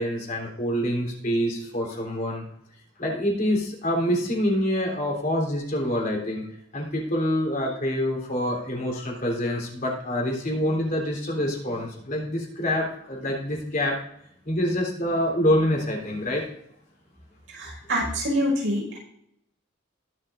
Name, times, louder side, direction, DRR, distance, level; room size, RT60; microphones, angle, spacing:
voice 1, 0.0-2.4 3.0-6.5 6.7-13.9 14.4-16.4, equal, 40° left, -1 dB, 3.4 m, -26 dB
voice 2, 17.6-19.0, equal, 65° right, -2 dB, 5.1 m, -26 dB
20.5 x 7.3 x 2.6 m, 0.72 s
head